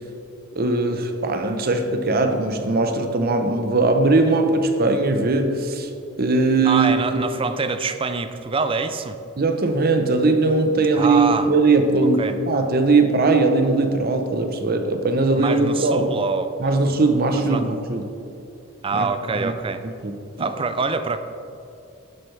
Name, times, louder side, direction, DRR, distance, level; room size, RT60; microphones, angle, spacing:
voice 1, 0.5-5.9 6.2-6.9 9.4-16.1 16.6-18.0 18.9-19.1 19.4-19.5 20.0-20.1 20.4-20.5, right 3 dB, 45° right, 6 dB, 0.8 m, -20 dB
voice 2, 6.6-9.2 10.9-11.5 12.2-12.4 15.4-16.8 17.5-17.6 18.8-19.8 20.4-21.2, right 4 dB, 25° right, 9 dB, 0.4 m, -25 dB
11.0 x 7.9 x 3.3 m, 2.7 s
head